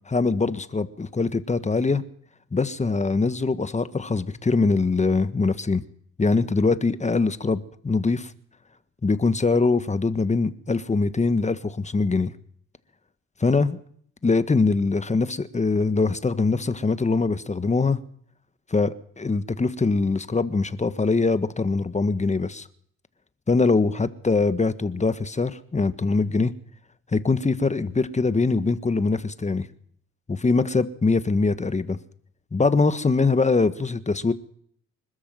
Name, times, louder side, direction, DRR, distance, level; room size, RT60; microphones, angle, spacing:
voice 1, 0.1-2.0 2.5-5.8 6.2-8.3 9.0-12.3 13.4-13.8 14.2-18.0 18.7-22.7 23.5-26.5 27.1-29.7 30.3-32.0 32.5-34.3, left 3 dB, 25° left, 1.5 m, -23 dB
25.5 x 13.0 x 7.8 m
cardioid pair, 90°, 30 cm